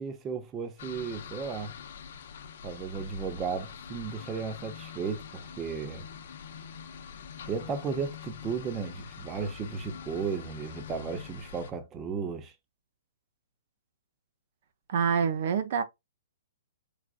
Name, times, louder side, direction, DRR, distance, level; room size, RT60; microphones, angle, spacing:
voice 1, 0.0-1.7 2.6-6.1 7.5-12.5, right 5 dB, 20° right, 0.7 m, -35 dB
sound 1, 0.8-11.7, left 7 dB, 60° left, 0.7 m, -44 dB
voice 2, 14.9-15.8, right 6 dB, 55° right, 0.6 m, -26 dB
4.8 x 2.4 x 2.4 m
hypercardioid pair, 145°, 0 cm